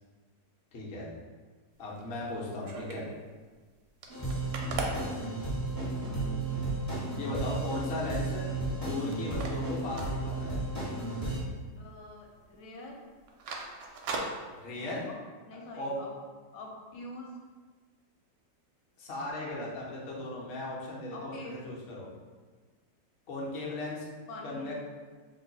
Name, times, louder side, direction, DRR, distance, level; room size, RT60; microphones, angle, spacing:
voice 1, 0.7-1.1 1.8-3.0 6.0-6.5 7.2-8.4 8.9-10.6 14.5-15.1 15.7-16.0 19.0-22.1 23.3-24.1 24.4-24.8, left 2 dB, 60° left, -5 dB, 0.6 m, -37 dB
sound 1, 1.8-3.2 3.6-3.7 3.9-6.0 6.5-6.6 6.9-7.4 7.8-8.8 9.1-10.9 11.2-11.3 11.7-12.2 12.4-12.6 13.1-15.0, right 3 dB, 70° right, 0.8 m, -40 dB
sound 2, 4.1-11.4, right 2 dB, 25° left, 0.4 m, -33 dB
voice 2, 11.8-13.0 14.8-15.2 15.4-16.1 16.5-17.4 21.1-21.6 24.3-24.8, left 2 dB, 75° left, -1 dB, 1.2 m, -45 dB
3.0 x 2.3 x 3.8 m, 1.4 s
omnidirectional pair, 1.9 m